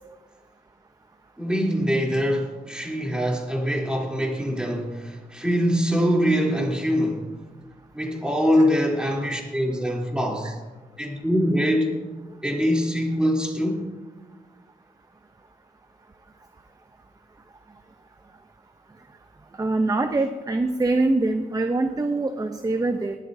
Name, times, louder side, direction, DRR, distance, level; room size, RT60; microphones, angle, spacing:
voice 1, 1.4-7.2 7.9-10.5 11.0-12.0 12.4-13.8, equal, 5° right, -2 dB, 3.3 m, -23 dB
voice 2, 19.6-23.2, right 2 dB, 25° right, 7 dB, 0.7 m, -24 dB
20.0 x 12.5 x 2.7 m, 1.3 s
wide cardioid pair, 85°, 16 cm